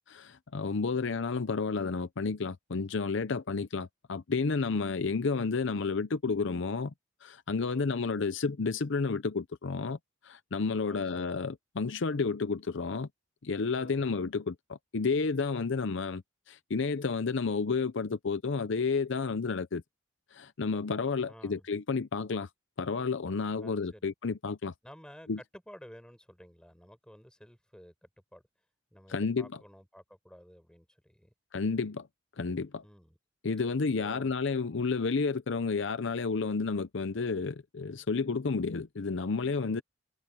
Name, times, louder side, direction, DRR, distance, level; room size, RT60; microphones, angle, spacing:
voice 1, 0.1-6.9 7.2-10.0 10.2-13.1 13.4-19.8 20.3-22.5 22.8-24.7 25.3-25.4 29.1-29.5 31.5-32.1 32.4-32.8 33.4-39.8, left 4 dB, 65° left, 0.6 m, -31 dB
voice 2, 7.7-8.0 10.8-11.3 13.7-14.1 21.2-21.7 23.6-24.1 24.8-28.4 28.9-31.3 32.8-33.2 33.8-34.3 39.6-39.8, equal, 5° left, 5.7 m, -53 dB
head